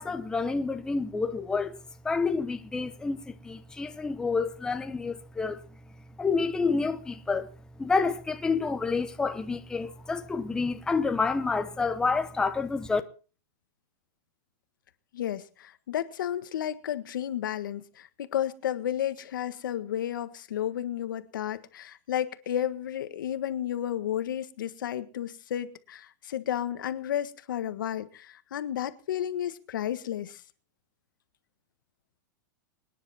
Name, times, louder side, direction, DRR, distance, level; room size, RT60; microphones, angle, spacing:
voice 1, 0.0-1.8 2.0-5.6 6.2-7.5 7.8-13.0, left 4 dB, 5° left, 0.8 m, -28 dB
voice 2, 15.1-30.4, left 10 dB, 90° left, 1.6 m, -32 dB
25.0 x 10.0 x 4.3 m
supercardioid pair, 160°, 10 cm